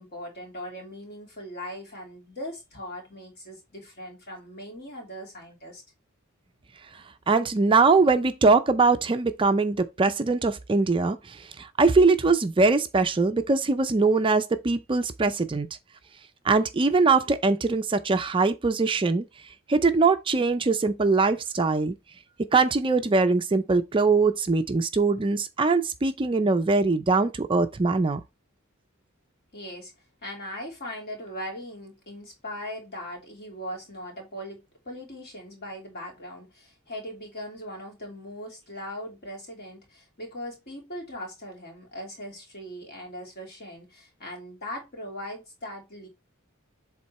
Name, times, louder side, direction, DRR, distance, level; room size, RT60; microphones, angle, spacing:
voice 1, 0.0-5.8 29.5-29.9 30.2-46.1, equal, 50° left, 3.0 m, -39 dB
voice 2, 6.9-15.7 16.4-19.2 19.7-21.9 22.5-28.2, right 3 dB, 25° right, 0.4 m, -22 dB
7.6 x 3.6 x 4.1 m
head